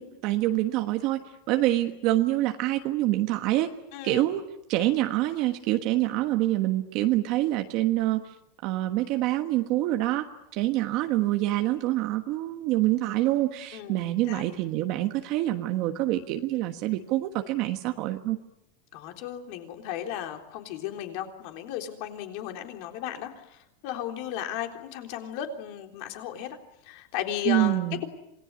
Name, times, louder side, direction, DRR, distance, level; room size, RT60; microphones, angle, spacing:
voice 1, 0.0-3.7 4.0-8.2 8.6-10.3 10.5-18.4 27.4-28.0, right 15 dB, 40° right, 5 dB, 1.3 m, -26 dB
voice 2, 3.9-4.3 13.7-14.0 14.3-14.5 18.9-26.5 26.8-28.1, left 11 dB, 50° left, 5 dB, 3.7 m, -35 dB
27.0 x 20.0 x 9.8 m, 0.84 s
supercardioid pair, 170°, 0 cm